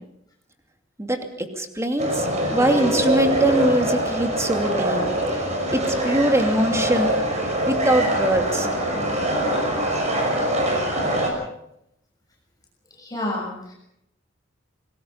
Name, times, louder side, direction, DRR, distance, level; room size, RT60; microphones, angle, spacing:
voice 1, 1.0-5.0 5.3-5.4 5.7-7.2 7.7-8.7, right 1 dB, 15° right, 4 dB, 2.7 m, -23 dB
sound 1, 2.0-11.3, right 1 dB, 35° right, 6.2 m, -23 dB
voice 2, 13.0-13.7, left 1 dB, 20° left, -3 dB, 6.4 m, -29 dB
27.5 x 20.0 x 5.7 m, 0.79 s
head